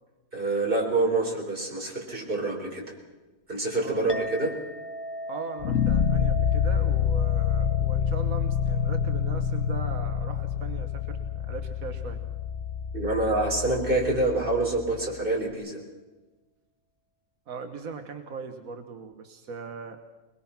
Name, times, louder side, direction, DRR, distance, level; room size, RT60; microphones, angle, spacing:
voice 1, 0.3-2.8 3.5-4.6 12.9-15.8, right 2 dB, 40° right, -1 dB, 4.7 m, -26 dB
voice 2, 3.8-4.3 5.3-12.2 17.5-20.0, right 5 dB, 85° right, 6 dB, 1.7 m, -39 dB
Chink clink, 4.1-12.8, equal, 20° left, 0.8 m, -41 dB
sound 1, 5.6-14.7, left 8 dB, 70° left, 1.3 m, -27 dB
22.0 x 21.5 x 5.9 m, 1.2 s
omnidirectional pair, 1.4 m